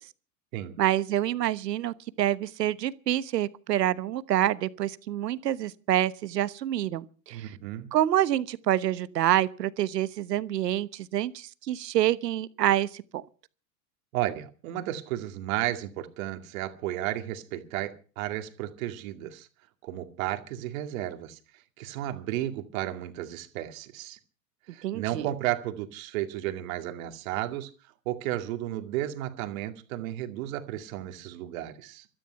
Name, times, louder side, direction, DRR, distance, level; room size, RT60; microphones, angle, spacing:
voice 1, 0.8-7.6 7.9-13.0 24.8-25.3, right 12 dB, 80° right, 1.2 m, -27 dB
voice 2, 7.3-7.9 14.1-19.5 19.8-21.4 21.8-24.2 24.7-27.7 28.1-32.1, right 14 dB, 55° right, 2.3 m, -33 dB
16.0 x 13.0 x 5.8 m
hypercardioid pair, 120°, 48 cm